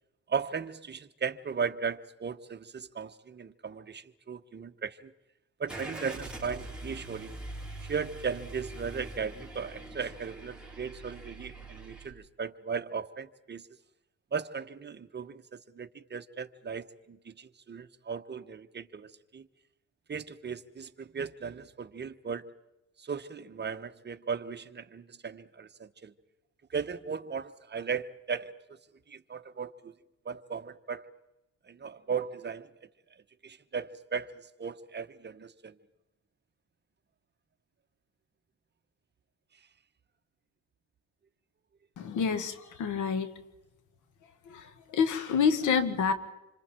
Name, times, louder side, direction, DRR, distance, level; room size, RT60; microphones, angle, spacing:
voice 1, 0.3-5.1 5.6-7.4 7.8-13.7 14.3-19.5 20.1-22.5 23.0-26.1 26.7-28.5 29.1-29.9 30.2-31.1 31.6-32.7 33.4-35.7, right 6 dB, 35° right, 1.2 m, -37 dB
Car / Engine starting, 5.7-12.1, right 2 dB, 5° right, 4.5 m, -43 dB
voice 2, 42.0-43.3 44.5-46.1, left 6 dB, 80° left, 2.0 m, -28 dB
27.5 x 25.5 x 4.5 m
cardioid pair, 90°, 30 cm